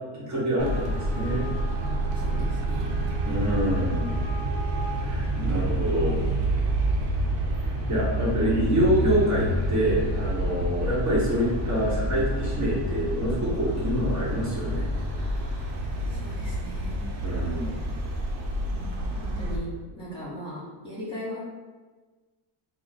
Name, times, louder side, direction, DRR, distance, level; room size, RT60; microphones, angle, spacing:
voice 1, 0.1-1.5 3.3-4.1 5.0-6.2 7.9-14.9 17.2-17.8, equal, 40° right, -6 dB, 1.2 m, -26 dB
Traffic noise roadway noise, 0.6-19.6, right 1 dB, 85° right, 0.9 m, -28 dB
voice 2, 2.1-2.9 15.2-15.8 16.1-17.0 17.6-17.9 18.7-21.4, equal, 10° left, -7 dB, 1.1 m, -39 dB
3.5 x 2.1 x 4.2 m, 1.3 s
cardioid pair, 135°, 44 cm